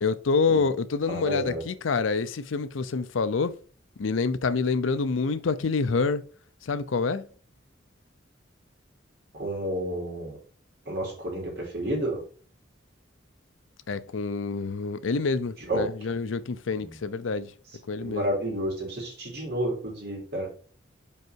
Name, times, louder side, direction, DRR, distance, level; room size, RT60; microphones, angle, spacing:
voice 1, 0.0-3.5 4.0-6.2 6.6-7.2 13.9-17.5 17.9-18.3, left 4 dB, 85° left, 0.6 m, -27 dB
voice 2, 1.1-1.6 9.4-10.4 10.9-12.2 15.7-15.8 18.0-20.5, right 1 dB, 55° right, 3.0 m, -30 dB
5.4 x 4.7 x 4.5 m
head